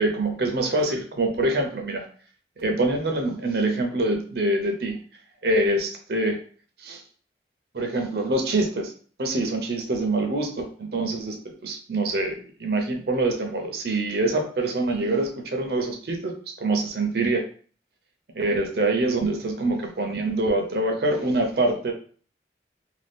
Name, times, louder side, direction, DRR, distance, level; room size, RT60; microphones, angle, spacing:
voice 1, 0.0-2.1 2.6-5.0 5.4-6.4 6.8-7.0 7.7-8.9 9.2-11.4 11.6-17.4 18.3-21.9, right 2 dB, 65° right, 3 dB, 0.6 m, -25 dB
2.6 x 2.2 x 3.4 m, 0.43 s
head